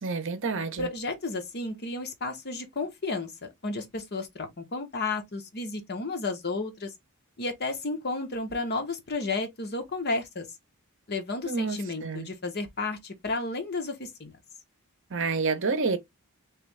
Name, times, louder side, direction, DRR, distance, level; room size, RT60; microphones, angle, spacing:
voice 1, 0.0-0.9 11.4-12.3 15.1-16.0, right 4 dB, 55° right, 0.8 m, -29 dB
voice 2, 0.8-6.9 7.4-10.5 11.1-14.4, left 3 dB, 45° left, 0.9 m, -32 dB
3.6 x 3.3 x 3.2 m
head